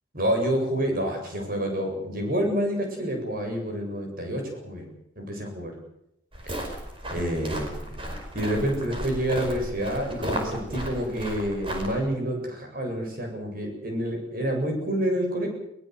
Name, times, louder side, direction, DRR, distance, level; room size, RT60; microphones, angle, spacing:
voice 1, 0.1-5.7 7.1-7.9 8.3-15.5, equal, 50° right, 2 dB, 8.0 m, -28 dB
sound 1, 6.3-12.0, right 1 dB, 30° right, 5.2 m, -34 dB
23.0 x 19.0 x 8.2 m, 0.80 s
head